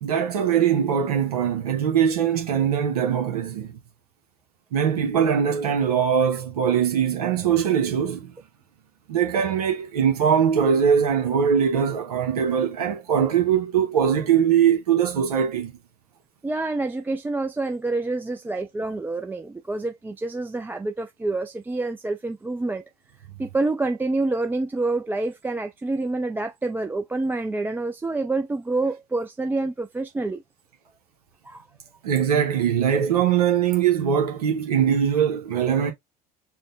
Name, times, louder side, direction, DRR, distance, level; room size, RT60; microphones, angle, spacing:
voice 1, 0.0-3.7 4.7-8.3 9.1-15.7 32.0-35.9, right 8 dB, 80° right, 0.8 m, -21 dB
voice 2, 16.4-22.8 23.4-30.4 31.5-31.7, right 2 dB, 10° right, 0.4 m, -27 dB
5.0 x 2.1 x 3.9 m
figure-of-eight pair, 65°, 19 cm